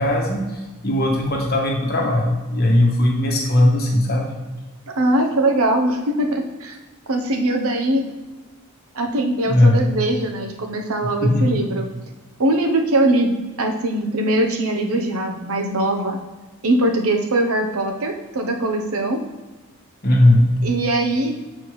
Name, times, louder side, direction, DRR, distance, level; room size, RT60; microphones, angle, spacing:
voice 1, 0.0-4.3 9.5-9.8 11.2-11.6 20.0-20.5, left 1 dB, 45° left, 0 dB, 1.1 m, -18 dB
voice 2, 4.9-6.8 7.1-8.1 8.9-11.9 12.4-13.3 13.6-16.2 16.6-19.2 20.6-21.4, right 1 dB, 75° right, 3 dB, 0.8 m, -21 dB
7.7 x 4.4 x 3.1 m, 1.2 s
head